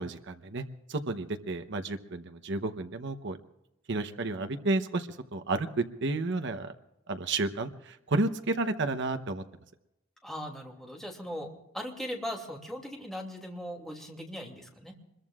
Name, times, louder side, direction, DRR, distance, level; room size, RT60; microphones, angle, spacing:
voice 1, 0.0-3.4 3.9-6.7 7.1-9.4, right 2 dB, 60° right, 8 dB, 0.9 m, -31 dB
voice 2, 10.2-15.0, equal, ahead, 0 dB, 2.6 m, -39 dB
25.5 x 21.5 x 2.4 m, 0.89 s
head